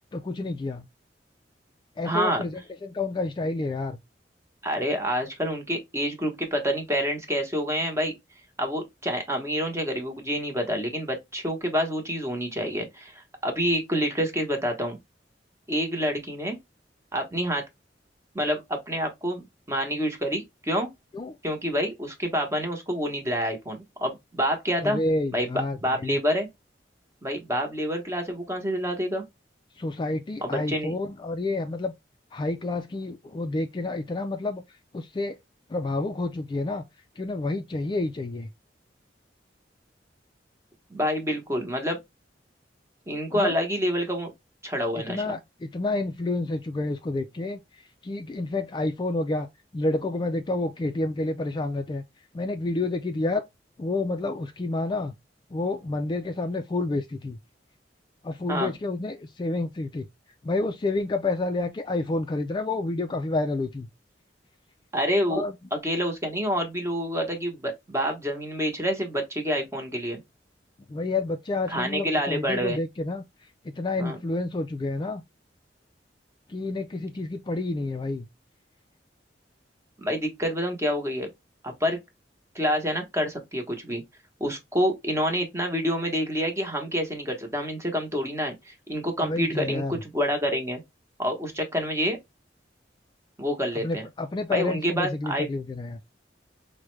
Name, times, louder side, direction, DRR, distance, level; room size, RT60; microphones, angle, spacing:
voice 1, 0.1-0.9 2.0-4.0 21.1-21.3 24.8-26.2 29.8-31.9 32.3-34.6 34.9-35.4 35.7-36.8 37.2-38.5 43.3-43.5 45.0-47.6 48.0-49.5 49.7-52.0 52.3-53.4 53.8-55.1 55.5-57.4 58.2-60.1 60.4-63.9 65.3-65.5 70.9-73.3 73.6-75.2 76.5-78.3 89.2-90.0 93.8-96.0, left 2 dB, 25° left, 0.3 m, -29 dB
voice 2, 2.0-2.4 4.6-8.1 8.6-15.0 15.7-16.6 17.1-17.6 18.3-20.9 21.4-25.0 25.3-25.5 25.8-26.5 27.2-29.2 30.4-30.9 40.9-42.0 43.1-44.3 44.6-45.4 58.5-58.7 64.9-65.4 65.7-70.2 71.7-72.8 74.0-74.2 80.0-81.3 81.6-82.0 82.5-84.0 84.4-90.8 91.2-92.2 93.4-94.0 94.5-95.5, equal, 15° right, 1.0 m, -27 dB
4.7 x 2.2 x 3.1 m
head